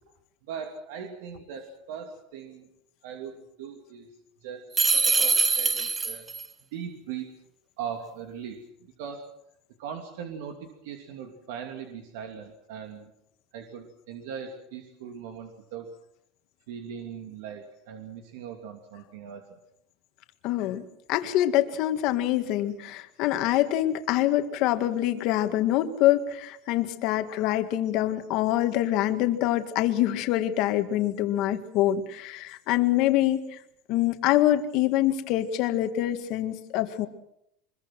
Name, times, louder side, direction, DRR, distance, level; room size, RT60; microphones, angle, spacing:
voice 1, 0.5-2.7 3.0-4.1 4.4-6.3 6.7-7.3 7.8-9.3 9.8-13.1 13.5-15.9 16.7-19.6, right 7 dB, 75° right, 3 dB, 2.9 m, -39 dB
sound 1, 4.7-6.5, right 4 dB, 15° right, 0.9 m, -23 dB
voice 2, 20.4-33.4 33.9-37.1, left 13 dB, 50° left, 7 dB, 1.9 m, -25 dB
24.5 x 22.0 x 6.2 m, 0.77 s
cardioid pair, 165°, 0 cm